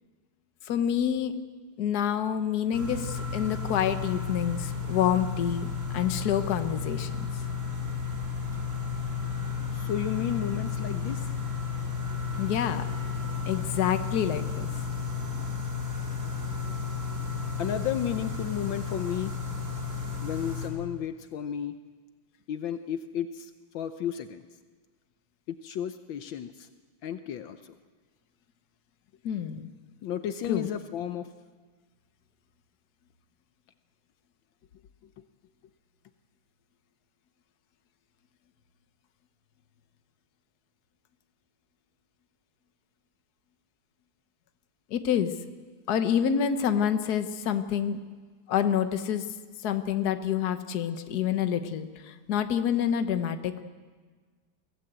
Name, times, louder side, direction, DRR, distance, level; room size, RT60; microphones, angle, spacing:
voice 1, 0.7-1.3 1.8-7.1 12.4-12.9 13.5-14.7 29.2-29.7 30.5-30.7 44.9-45.3 45.9-48.0 48.5-49.2 49.6-53.6, left 9 dB, 55° left, 9 dB, 1.5 m, -27 dB
sound 1, 2.7-20.7, left 5 dB, 35° right, 3.7 m, -33 dB
voice 2, 9.7-11.3 17.6-19.3 20.2-21.7 22.5-24.4 25.5-26.7 27.0-27.6 30.0-31.3, left 10 dB, 75° left, 9 dB, 1.5 m, -33 dB
23.0 x 16.5 x 8.0 m, 1.5 s
omnidirectional pair, 2.2 m